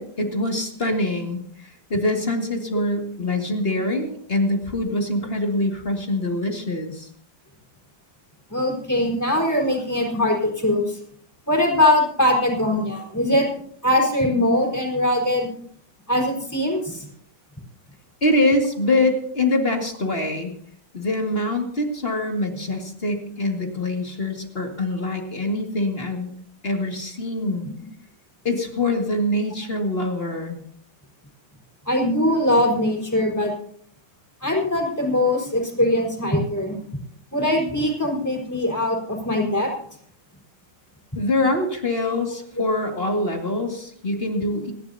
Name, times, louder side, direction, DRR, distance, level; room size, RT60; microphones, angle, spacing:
voice 1, 0.0-7.1 18.2-20.5 20.9-26.3 26.6-27.7 28.4-30.6 41.2-44.7, left 1 dB, 30° left, 2 dB, 2.3 m, -24 dB
voice 2, 8.5-11.0 11.5-13.5 13.8-15.5 16.1-17.1 31.9-33.5 34.4-36.8 37.3-39.7, left 1 dB, 10° left, -1 dB, 4.2 m, -21 dB
28.0 x 11.5 x 2.8 m, 0.62 s
omnidirectional pair, 2.0 m